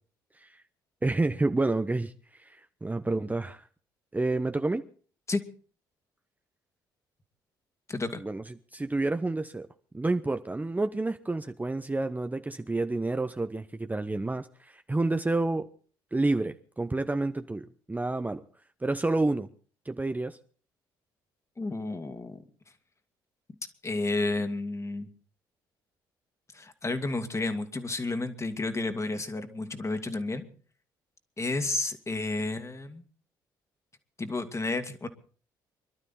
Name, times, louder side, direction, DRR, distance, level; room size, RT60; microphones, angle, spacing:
voice 1, 1.0-3.7 4.1-4.8 8.2-8.4 8.7-9.7 9.9-15.7 16.1-18.4 18.8-19.5 19.8-20.4, right 2 dB, 15° right, 0.9 m, -29 dB
voice 2, 7.9-8.2 21.6-22.4 23.8-25.1 26.5-30.5 31.4-33.0 34.2-35.1, left 2 dB, 25° left, 2.2 m, -31 dB
24.5 x 12.0 x 4.2 m
hypercardioid pair, 50°, 11 cm